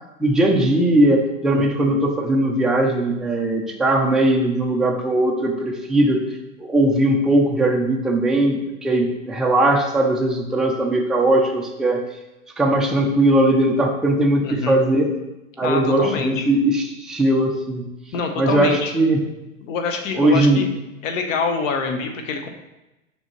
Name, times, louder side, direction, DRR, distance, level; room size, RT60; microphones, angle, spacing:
voice 1, 0.2-6.2 6.6-12.0 12.6-15.1 15.6-17.8 18.4-19.2 20.2-20.6, right 1 dB, ahead, 0 dB, 0.4 m, -19 dB
voice 2, 14.4-14.8 15.6-16.5 18.1-18.9 19.6-20.7 21.0-22.5, left 4 dB, 70° left, 5 dB, 1.2 m, -25 dB
7.3 x 5.3 x 3.1 m, 0.99 s
hypercardioid pair, 125°, 40 cm